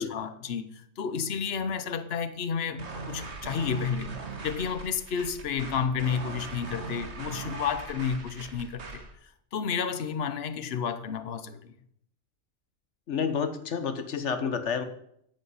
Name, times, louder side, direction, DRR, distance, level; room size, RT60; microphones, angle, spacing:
voice 1, 0.1-4.1 4.4-9.0 9.5-11.7, left 6 dB, 60° left, 1.1 m, -31 dB
sound 1, 2.8-9.1, right 3 dB, 70° right, 1.9 m, -40 dB
voice 2, 13.1-14.8, left 6 dB, 80° left, 1.4 m, -30 dB
9.6 x 8.7 x 8.2 m
omnidirectional pair, 1.2 m